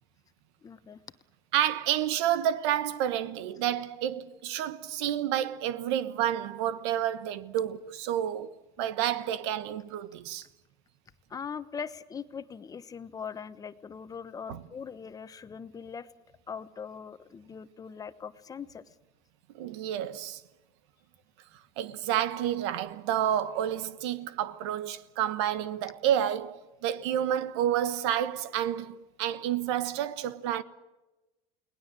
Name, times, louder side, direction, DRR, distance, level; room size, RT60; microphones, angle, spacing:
voice 1, 0.6-1.0 11.3-16.1 16.5-18.8, left 6 dB, 25° left, 1.1 m, -41 dB
voice 2, 1.5-10.5 14.5-14.6 19.5-20.4 21.8-30.6, right 11 dB, 90° right, 1.3 m, -30 dB
29.5 x 19.0 x 7.6 m
supercardioid pair, 115°, 14 cm